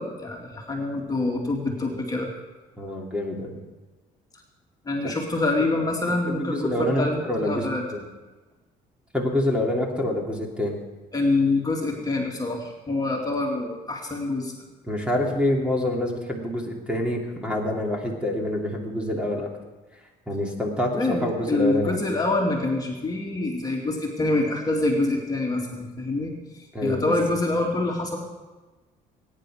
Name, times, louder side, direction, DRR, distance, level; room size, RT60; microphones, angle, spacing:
voice 1, 0.0-2.3 4.9-7.8 11.1-14.5 21.0-28.2, left 2 dB, 20° left, -1 dB, 2.5 m, -26 dB
voice 2, 2.8-3.6 5.0-5.1 5.6-5.7 6.1-8.1 9.1-10.8 14.9-19.5 20.3-22.0 26.7-27.1, left 1 dB, 5° right, -1 dB, 2.8 m, -26 dB
21.5 x 10.0 x 5.0 m, 1.2 s
cardioid pair, 110°, 17 cm